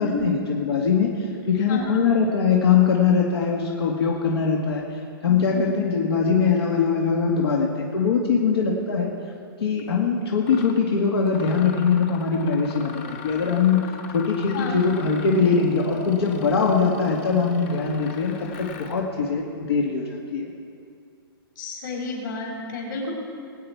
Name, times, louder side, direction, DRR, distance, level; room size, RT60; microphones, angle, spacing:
voice 1, 0.0-4.9 5.2-9.1 9.6-13.9 14.1-20.5, left 5 dB, 90° left, -1 dB, 1.9 m, -22 dB
voice 2, 1.4-2.0 5.3-5.6 14.5-14.8 21.6-23.1, left 3 dB, 55° left, -1 dB, 3.9 m, -31 dB
Mechanisms, 9.8-9.9 10.4-10.8 11.2-19.1, left 6 dB, 30° left, 0.9 m, -40 dB
21.5 x 8.8 x 4.8 m, 2.4 s
hypercardioid pair, 170°, 13 cm